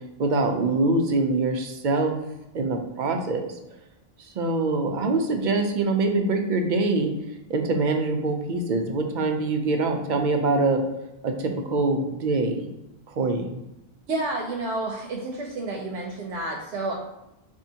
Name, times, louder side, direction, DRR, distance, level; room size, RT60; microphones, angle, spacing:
voice 1, 0.2-2.2 2.5-3.5 4.3-7.1 7.5-10.8 11.2-12.7 13.1-13.6, right 3 dB, 55° right, 3 dB, 0.6 m, -24 dB
voice 2, 14.1-16.9, right 2 dB, 85° right, -1 dB, 0.9 m, -30 dB
4.4 x 2.8 x 2.7 m, 0.89 s
omnidirectional pair, 1.1 m